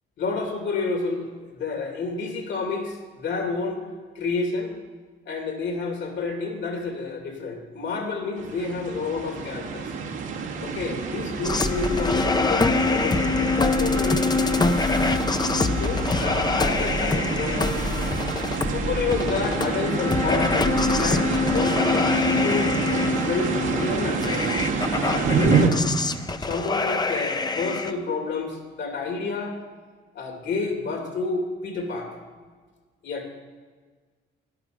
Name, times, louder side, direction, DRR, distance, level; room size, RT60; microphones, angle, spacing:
voice 1, 0.2-3.8 4.1-4.7 5.3-9.9 10.6-14.8 15.7-17.7 18.7-24.6 24.9-25.9 26.4-29.6 30.1-32.2 33.0-33.3, left 4 dB, 65° left, 2 dB, 2.7 m, -29 dB
sound 1, 8.4-25.7, right 5 dB, 80° right, 2.0 m, -28 dB
sound 2, 11.4-27.9, left 3 dB, 20° left, 0.7 m, -25 dB
12.5 x 11.0 x 5.1 m, 1.5 s
cardioid pair, 90°, 20 cm